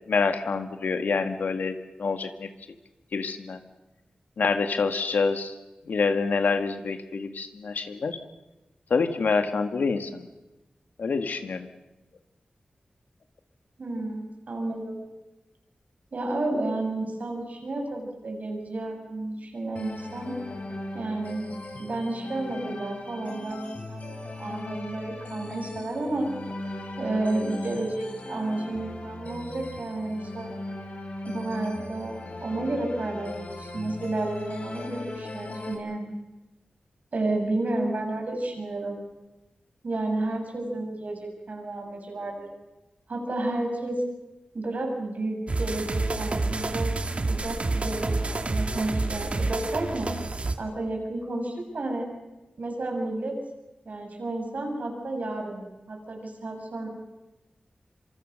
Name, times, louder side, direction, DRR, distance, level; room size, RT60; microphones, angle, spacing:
voice 1, 0.1-2.5 3.1-3.6 4.4-5.5 5.9-8.2 8.9-10.3 11.0-11.7, left 4 dB, 90° left, 8 dB, 1.9 m, -26 dB
voice 2, 13.8-15.0 16.1-20.4 20.9-21.5 21.8-26.3 27.0-30.5 31.3-36.1 37.1-39.0 39.8-42.5 43.1-44.0 44.5-47.0 47.3-50.1 50.6-52.1 52.6-53.4 53.9-56.9, right 2 dB, 65° right, 2 dB, 7.0 m, -31 dB
sound 1, 19.8-35.8, left 2 dB, 55° left, 4.9 m, -38 dB
sound 2, 45.5-50.6, right 2 dB, 45° right, 2.1 m, -28 dB
26.0 x 24.5 x 6.6 m, 1.0 s
wide cardioid pair, 70°, 3 cm